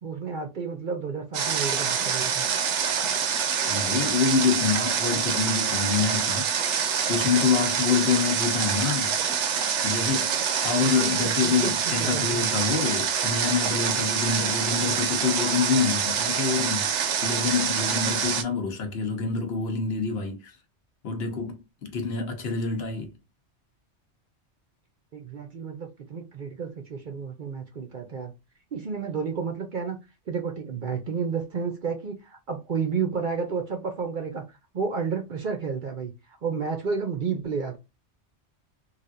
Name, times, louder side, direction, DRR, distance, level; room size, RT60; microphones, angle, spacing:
voice 1, 0.0-2.4 10.5-12.4 25.1-28.3 28.7-30.0 30.3-34.4 34.7-37.8, right 5 dB, 50° right, 0.7 m, -31 dB
Water, 1.3-18.4, right 7 dB, 80° right, 0.9 m, -26 dB
voice 2, 3.6-6.8 7.1-9.2 9.8-10.4 10.6-16.9 17.2-20.5 21.0-23.1, left 5 dB, 60° left, 1.0 m, -26 dB
3.3 x 2.5 x 2.5 m
omnidirectional pair, 1.2 m